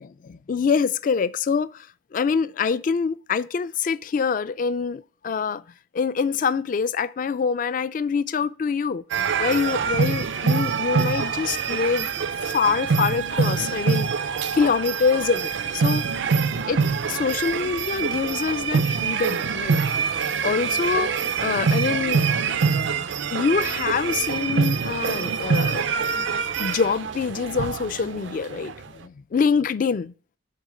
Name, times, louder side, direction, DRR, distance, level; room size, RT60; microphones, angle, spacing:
voice 1, 0.0-1.9 2.1-5.6 5.9-12.1 12.5-14.1 14.5-16.0 16.7-19.8 20.4-21.1 21.4-22.2 23.3-25.8 26.6-30.1, left 5 dB, 45° left, 0.3 m, -25 dB
sound 1, 9.1-28.8, right 5 dB, 80° right, 0.5 m, -25 dB
6.6 x 4.1 x 6.3 m
head